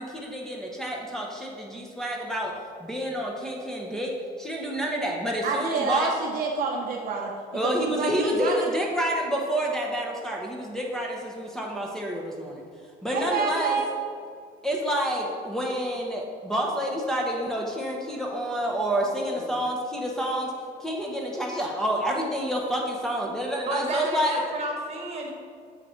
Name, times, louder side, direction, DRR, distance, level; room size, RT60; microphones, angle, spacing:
voice 1, 0.0-2.5 2.8-6.1 7.5-12.6 13.0-13.8 14.6-20.5 20.8-24.4, equal, 5° left, -3 dB, 1.0 m, -28 dB
voice 2, 5.4-7.3 7.6-8.7 13.1-13.9, right 4 dB, 55° right, 0 dB, 0.7 m, -28 dB
voice 3, 23.7-25.3, right 1 dB, 40° right, 0 dB, 1.6 m, -32 dB
7.9 x 3.9 x 4.4 m, 2.2 s
cardioid pair, 110°, 17 cm